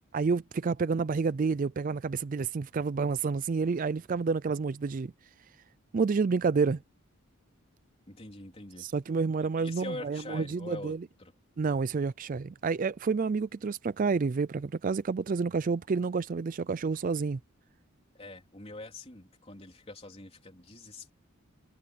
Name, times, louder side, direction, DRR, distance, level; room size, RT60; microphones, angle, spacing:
voice 1, 0.1-5.1 5.9-6.8 8.8-11.0 11.6-17.4, right 4 dB, 40° right, 0.4 m, -29 dB
voice 2, 8.1-8.9 9.4-11.3 18.1-21.1, left 2 dB, 30° left, 3.7 m, -44 dB
head